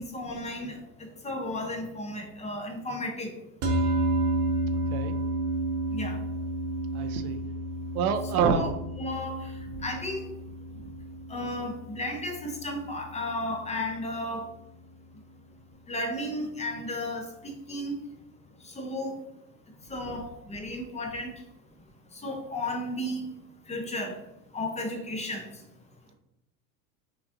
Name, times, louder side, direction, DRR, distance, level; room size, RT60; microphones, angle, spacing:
voice 1, 0.0-3.4 5.9-6.2 8.6-8.7 9.0-9.5 9.8-10.3 11.3-14.5 15.9-17.9 18.6-19.1 19.9-21.3 22.1-23.2 23.7-24.2 24.5-25.5, left 1 dB, 15° left, 2 dB, 0.7 m, -34 dB
sound 1, 3.6-14.1, right 1 dB, 40° right, 0.8 m, -31 dB
voice 2, 4.7-5.1 6.9-7.4 7.9-8.7, right 6 dB, 85° right, 8 dB, 0.7 m, -27 dB
5.8 x 2.4 x 2.6 m, 0.89 s
supercardioid pair, 115°, 43 cm